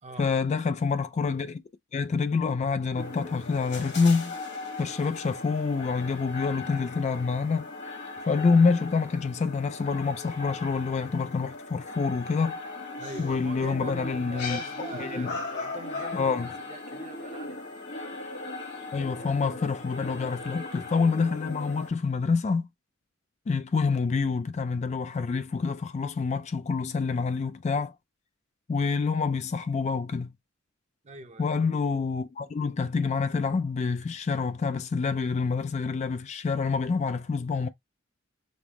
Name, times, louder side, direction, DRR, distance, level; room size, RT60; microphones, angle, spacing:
voice 1, 0.2-1.6 1.9-4.4 4.8-7.7 8.3-12.6 13.2-14.6 15.0-15.3 16.1-16.5 18.9-22.7 23.5-27.9 28.7-30.3 31.4-37.7, left 4 dB, 35° left, 0.3 m, -27 dB
sound 1, 3.0-21.9, left 3 dB, 55° left, 1.4 m, -38 dB
voice 2, 13.0-17.6 31.0-31.5, right 3 dB, 35° right, 0.7 m, -43 dB
5.2 x 2.0 x 3.0 m
head